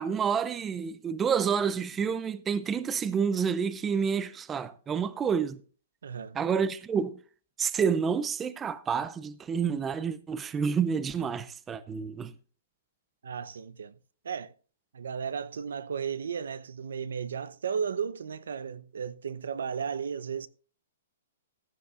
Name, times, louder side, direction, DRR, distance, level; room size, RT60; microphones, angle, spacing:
voice 1, 0.0-5.6 6.3-7.2 7.6-12.3, right 6 dB, 15° right, 0.5 m, -29 dB
voice 2, 6.0-6.4 13.2-13.9 14.2-14.5 14.9-20.5, right 6 dB, 90° right, 0.8 m, -34 dB
15.5 x 11.0 x 2.5 m
hypercardioid pair, 165°, 0 cm